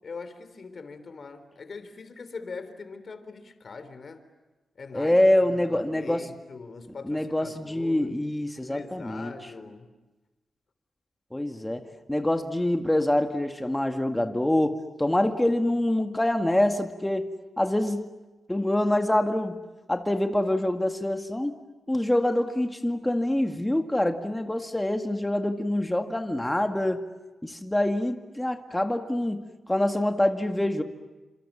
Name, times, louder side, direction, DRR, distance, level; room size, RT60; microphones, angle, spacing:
voice 1, 0.0-4.2 4.8-5.1 5.4-8.2 8.5-10.0, left 4 dB, 50° left, 10 dB, 3.4 m, -41 dB
voice 2, 4.9-6.2 7.0-9.3 11.3-11.8 12.1-17.3 17.6-18.1 18.5-19.6 19.9-21.5 21.9-27.0 27.4-30.8, left 1 dB, 10° left, 5 dB, 2.0 m, -25 dB
29.5 x 27.0 x 7.4 m, 1.2 s
cardioid pair, 95°, 0 cm